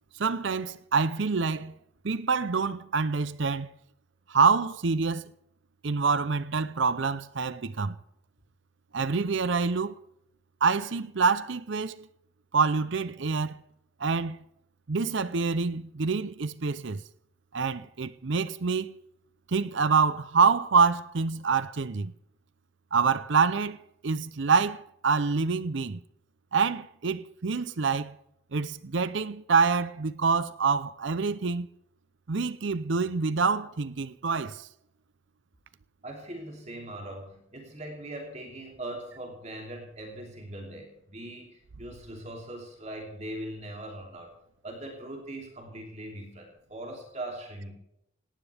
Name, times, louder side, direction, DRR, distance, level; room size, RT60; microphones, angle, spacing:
voice 1, 0.2-1.7 2.0-3.7 4.3-5.2 5.8-8.0 8.9-10.0 10.6-12.0 12.5-13.6 14.0-14.4 14.9-17.0 17.5-19.0 19.5-22.1 22.9-26.0 26.5-28.2 28.5-31.7 32.3-34.7, right 5 dB, 60° right, 0.6 m, -26 dB
voice 2, 36.0-44.3 44.6-47.7, right 1 dB, 35° right, 3.0 m, -40 dB
18.5 x 18.0 x 3.5 m
head